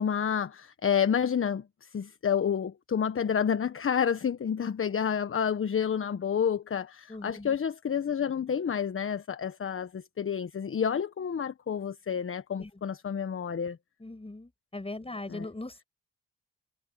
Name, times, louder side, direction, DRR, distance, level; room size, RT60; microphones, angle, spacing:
voice 1, 0.0-13.8 15.3-15.5, left 7 dB, 45° left, 1.3 m, -29 dB
voice 2, 7.1-7.6 12.6-12.7 14.0-15.8, left 2 dB, 20° left, 6.1 m, -40 dB
supercardioid pair, 50°, 29 cm